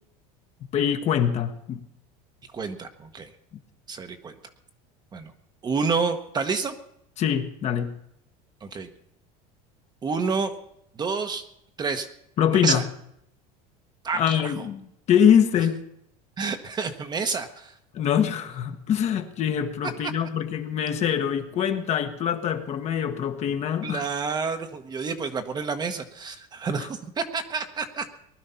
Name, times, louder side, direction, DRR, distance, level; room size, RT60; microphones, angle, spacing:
voice 1, 0.7-1.8 7.2-7.9 12.4-12.9 14.1-15.8 17.9-24.0 26.8-26.9, left 8 dB, 40° left, 7 dB, 1.3 m, -24 dB
voice 2, 2.5-3.3 3.9-4.3 5.1-5.3 5.6-6.7 8.6-8.9 10.0-10.5 11.0-11.4 11.8-12.1 12.5-12.8 14.0-14.5 16.4-17.7 23.8-28.1, right 5 dB, 25° right, 8 dB, 1.1 m, -29 dB
19.5 x 11.5 x 5.7 m, 0.74 s
cardioid pair, 145°, 18 cm